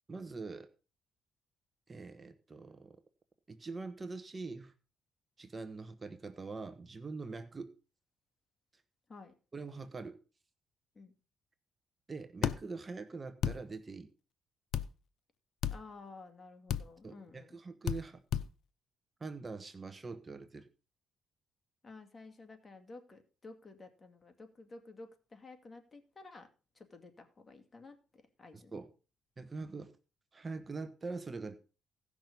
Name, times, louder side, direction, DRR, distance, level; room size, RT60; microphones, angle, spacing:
voice 1, 0.1-0.7 1.9-3.0 3.5-4.7 5.4-7.7 8.7-8.8 9.5-10.2 12.1-14.1 17.0-18.2 19.2-20.7 28.5-28.9 29.4-29.9 30.3-31.5, right 3 dB, 30° right, 10 dB, 1.2 m, -43 dB
sound 1, 12.4-12.6 13.4-13.6 14.7-14.9 15.6-15.8 16.7-16.8 17.9-18.0 18.3-18.5, left 9 dB, 75° left, 0.6 m, -32 dB
voice 2, 15.7-17.6 21.8-26.5 26.7-28.8, left 3 dB, 30° left, 6 dB, 2.3 m, -53 dB
16.5 x 6.1 x 5.4 m, 0.35 s
cardioid pair, 90°, 0 cm